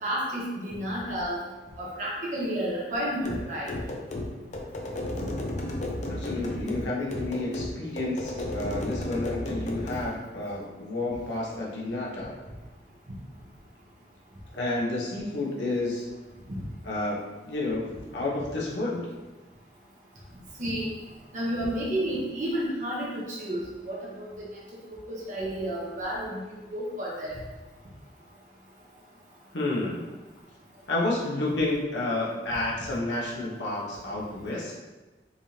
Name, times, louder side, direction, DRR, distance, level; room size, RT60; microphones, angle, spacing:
voice 1, 0.0-1.4 1.8-3.7 20.6-20.9 21.3-24.3 25.1-26.4 26.7-27.3, right 1 dB, 45° right, -5 dB, 0.9 m, -31 dB
sound 1, 3.2-10.1, left 1 dB, 40° left, 0.6 m, -33 dB
voice 2, 6.1-12.3 14.5-16.1 16.8-17.9 18.1-19.1 29.5-30.1 30.9-34.8, left 2 dB, 85° left, -4 dB, 1.0 m, -30 dB
5.2 x 3.3 x 2.8 m, 1.2 s
head